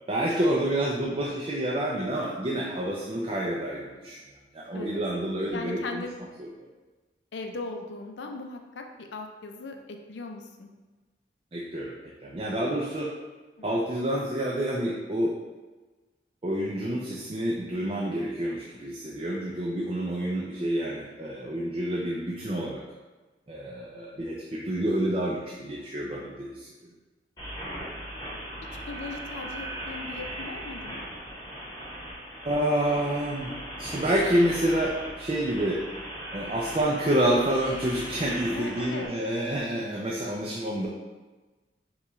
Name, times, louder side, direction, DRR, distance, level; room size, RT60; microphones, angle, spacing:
voice 1, 0.1-4.2 4.5-6.0 6.4-6.5 11.5-11.9 12.2-13.1 13.6-15.3 16.4-22.8 23.5-26.7 32.4-33.5 33.8-35.8 36.3-40.9, right 1 dB, 30° right, -4 dB, 0.4 m, -28 dB
voice 2, 5.5-6.1 7.3-10.7 13.6-13.7 28.9-31.1 38.5-39.1, left 3 dB, 80° left, 3 dB, 0.5 m, -38 dB
sound 1, 27.4-39.1, right 1 dB, 25° left, 1.1 m, -39 dB
5.7 x 2.3 x 3.1 m, 1.2 s
head